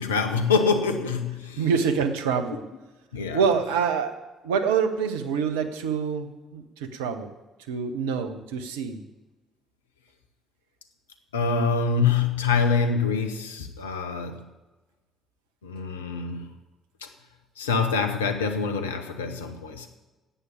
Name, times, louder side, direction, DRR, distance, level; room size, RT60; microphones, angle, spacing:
voice 1, 0.0-1.7 3.1-3.4 11.3-14.4 15.6-16.5 17.0-17.1 17.6-19.9, left 5 dB, 80° left, 7 dB, 0.9 m, -25 dB
voice 2, 1.6-2.6 3.3-7.3 7.7-9.0, right 6 dB, 75° right, 8 dB, 1.0 m, -26 dB
11.0 x 8.3 x 8.6 m, 1.2 s
figure-of-eight pair, 45°, 0 cm